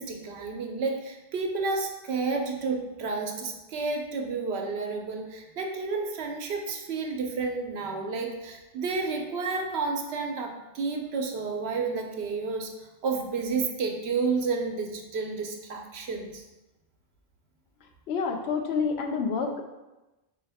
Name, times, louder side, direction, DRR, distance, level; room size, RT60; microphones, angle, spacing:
voice 1, 0.0-12.7 13.0-16.4, right 4 dB, 80° right, 3 dB, 0.9 m, -31 dB
voice 2, 18.1-19.6, left 5 dB, 80° left, 4 dB, 0.8 m, -28 dB
4.4 x 3.3 x 3.4 m, 1.0 s
omnidirectional pair, 1.1 m